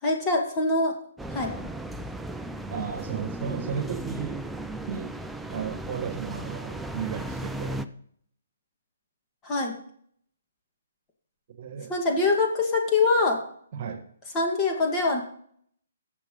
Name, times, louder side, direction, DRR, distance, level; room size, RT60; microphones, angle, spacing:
voice 1, 0.0-1.0 1.3-1.5 9.4-9.7 11.9-13.4 14.3-15.2, left 3 dB, 20° left, 0 dB, 2.1 m, -24 dB
sound 1, 1.2-7.9, right 1 dB, 5° right, 0.4 m, -35 dB
voice 2, 2.7-4.5 4.8-7.9 11.5-11.9 13.7-14.0, right 7 dB, 45° right, 6 dB, 1.7 m, -34 dB
14.5 x 6.9 x 4.0 m, 0.63 s
hypercardioid pair, 150°, 0 cm